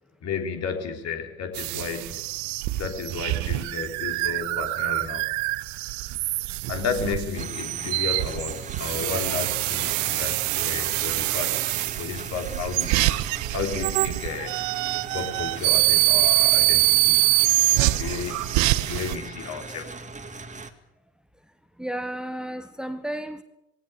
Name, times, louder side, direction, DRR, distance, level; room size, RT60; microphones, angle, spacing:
voice 1, 0.2-2.3 2.7-5.3 6.7-11.7 12.0-13.0 13.5-14.6 15.1-17.4 17.8-19.9, left 5 dB, 55° left, 5 dB, 3.4 m, -32 dB
sound 1, 1.5-19.1, right 20 dB, 60° right, 0.7 m, -25 dB
sound 2, 7.3-20.7, right 3 dB, 20° right, 2.2 m, -39 dB
voice 2, 21.8-23.4, right 1 dB, ahead, 10 dB, 1.5 m, -32 dB
19.5 x 18.0 x 8.3 m, 0.87 s
figure-of-eight pair, 55°, 33 cm